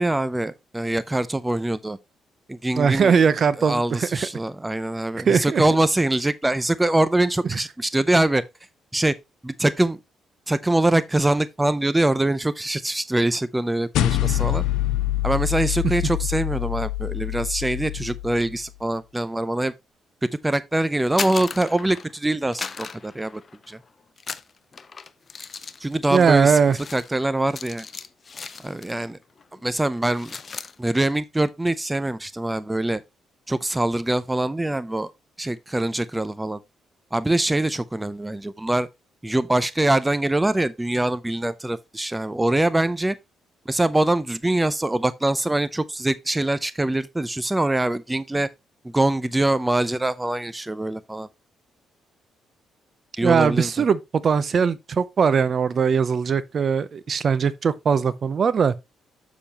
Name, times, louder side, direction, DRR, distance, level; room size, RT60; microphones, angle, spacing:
voice 1, 0.0-2.0 2.5-3.1 3.6-8.4 8.9-9.1 9.4-10.0 10.5-14.6 15.2-19.7 20.2-23.4 23.7-23.8 25.8-26.6 26.9-27.9 28.6-29.2 29.6-30.3 30.8-33.0 33.5-35.1 35.4-36.6 37.1-38.9 39.2-43.2 43.7-48.5 48.8-51.3 53.2-53.7, right 1 dB, 10° right, 0.5 m, -23 dB
voice 2, 2.8-4.3 5.3-5.6 7.5-7.6 26.1-26.8 53.2-58.7, right 6 dB, 45° right, 0.7 m, -20 dB
sound 1, 13.9-18.6, left 14 dB, 85° left, 0.8 m, -25 dB
sound 2, 20.9-22.2 22.5-23.8 24.2-29.1 29.4-29.6 29.9-30.7, left 5 dB, 40° left, 0.7 m, -36 dB
7.1 x 6.9 x 3.0 m
cardioid pair, 90°, 0 cm